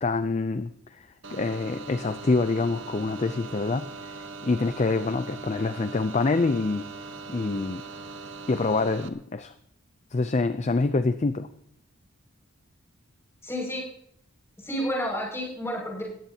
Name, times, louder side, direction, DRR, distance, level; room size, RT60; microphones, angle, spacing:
voice 1, 0.0-6.9 7.3-7.8 8.5-9.5 10.1-11.5, left 3 dB, 30° left, 11 dB, 0.4 m, -26 dB
sound 1, 1.2-9.1, right 3 dB, 55° right, 1.0 m, -40 dB
voice 2, 13.4-13.9 14.6-16.0, equal, 10° left, -3 dB, 6.1 m, -30 dB
20.0 x 14.5 x 2.8 m, 0.70 s
head